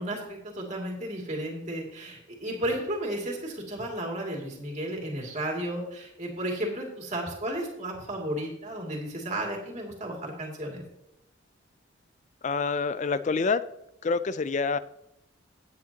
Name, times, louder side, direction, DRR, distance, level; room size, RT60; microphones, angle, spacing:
voice 1, 0.0-10.8, right 1 dB, 35° right, -1 dB, 2.6 m, -33 dB
voice 2, 12.4-13.6 14.0-14.8, left 4 dB, 35° left, 15 dB, 0.4 m, -27 dB
14.0 x 9.1 x 2.9 m, 0.84 s
head